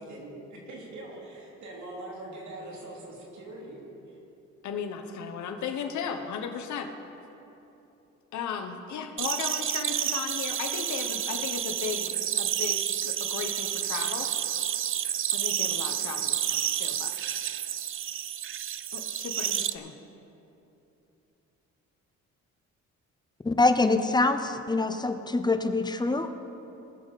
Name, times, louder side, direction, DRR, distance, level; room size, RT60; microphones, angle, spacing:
voice 1, 0.0-3.8, right 1 dB, 70° right, -3 dB, 2.9 m, -42 dB
voice 2, 4.6-6.9 8.3-14.3 15.3-17.1 18.9-20.0, left 6 dB, 70° left, 5 dB, 1.0 m, -36 dB
sound 1, 9.2-19.7, right 10 dB, 45° right, 0.4 m, -30 dB
voice 3, 23.4-26.3, left 2 dB, 15° left, 9 dB, 0.7 m, -24 dB
19.5 x 7.2 x 4.1 m, 3.0 s
cardioid pair, 90°, 30 cm